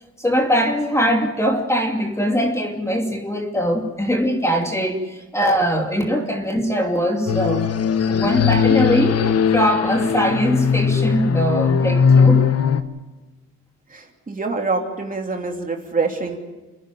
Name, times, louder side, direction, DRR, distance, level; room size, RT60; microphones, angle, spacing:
voice 1, 0.2-7.7 8.1-12.4, equal, 10° left, 2 dB, 2.8 m, -21 dB
sound 1, 7.3-12.8, left 6 dB, 55° left, 1.4 m, -18 dB
voice 2, 13.9-16.4, right 3 dB, 25° right, 2 dB, 3.1 m, -25 dB
30.0 x 10.5 x 9.2 m, 1.2 s
cardioid pair, 90°, 30 cm